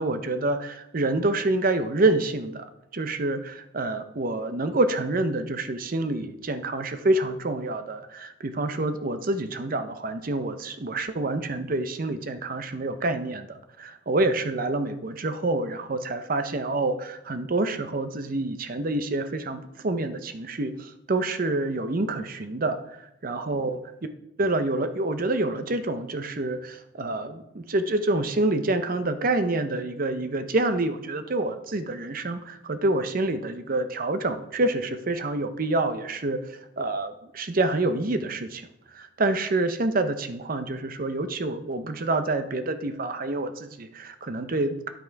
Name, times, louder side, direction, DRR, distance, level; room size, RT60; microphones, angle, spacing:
voice 1, 0.0-23.8 24.4-44.9, right 2 dB, 45° right, 9 dB, 0.7 m, -27 dB
10.0 x 6.0 x 4.6 m, 0.84 s
head